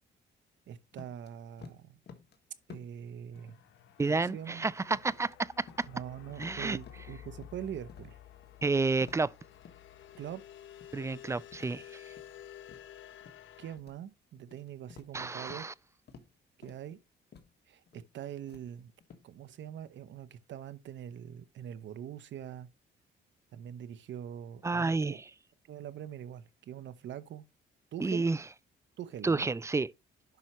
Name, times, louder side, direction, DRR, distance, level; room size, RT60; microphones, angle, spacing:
voice 1, 0.7-2.0 2.7-3.6 4.1-4.7 5.9-8.2 10.2-10.4 13.6-15.7 16.6-17.0 17.7-18.9 19.2-22.7 23.5-25.2 25.7-27.5 27.9-28.2 29.0-29.5, right 10 dB, 65° right, 0.9 m, -43 dB
sound 1, 0.9-1.3 1.6-2.4 2.7-3.1 3.4-4.6 4.9-5.3 5.7-6.0 6.3-7.6 7.9-8.1 8.4-9.8 10.1-10.4 10.8-11.1 11.5-12.4 12.7-13.4 13.8-14.0 14.4-15.7 16.1-16.4 16.6-16.9 17.3-17.5 17.9-18.1 18.5-19.3, left 6 dB, 55° left, 1.6 m, -54 dB
sound 2, 3.3-13.8, left 11 dB, 75° left, 1.2 m, -52 dB
voice 2, 4.0-5.9 6.4-6.8 8.6-9.3 10.9-11.8 15.1-15.7 24.6-25.2 28.0-28.4 29.2-29.9, right 3 dB, 15° right, 0.3 m, -30 dB
10.5 x 5.6 x 3.1 m
cardioid pair, 90°, 20 cm